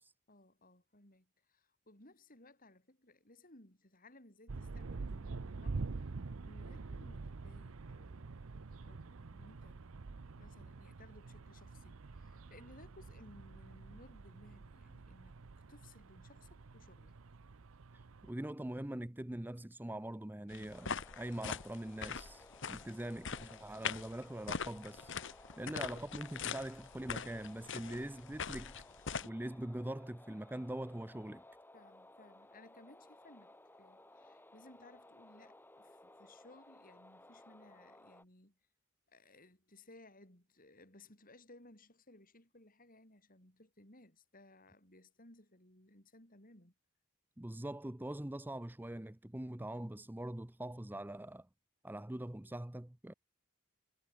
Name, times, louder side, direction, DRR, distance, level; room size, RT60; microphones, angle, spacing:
voice 1, 0.3-6.0 6.4-8.5 8.8-9.8 10.4-15.3 15.7-17.2 25.5-25.8 31.7-38.6 39.1-46.7, left 1 dB, 40° left, 7.2 m, -61 dB
sound 1, 4.5-18.3, right 3 dB, 75° right, 0.7 m, -46 dB
voice 2, 18.2-25.1 25.6-28.8 29.2-31.4 47.4-51.5 51.8-53.1, right 1 dB, 10° right, 0.6 m, -43 dB
sound 2, 20.5-29.3, left 6 dB, 60° left, 1.6 m, -42 dB
sound 3, 20.7-38.2, left 1 dB, 10° left, 3.5 m, -59 dB
head